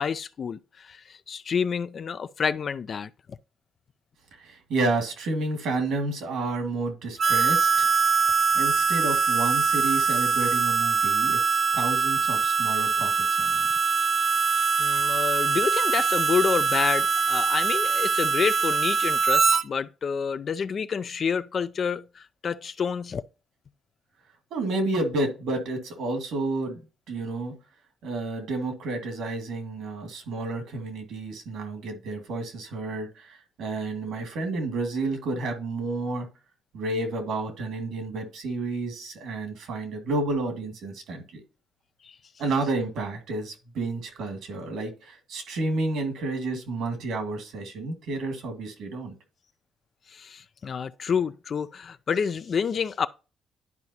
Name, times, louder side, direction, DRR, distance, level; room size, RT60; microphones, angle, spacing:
voice 1, 0.0-3.4 14.8-23.2 42.0-42.2 50.1-53.1, left 6 dB, 50° left, 0.3 m, -28 dB
voice 2, 4.4-7.9 8.5-13.7 24.5-26.8 27.1-27.5 28.0-36.3 36.7-41.4 42.4-49.2, right 2 dB, 80° right, 2.0 m, -30 dB
Harmonica, 7.2-19.6, right 5 dB, 60° right, 0.8 m, -23 dB
11.0 x 4.8 x 2.7 m
cardioid pair, 90°, 0 cm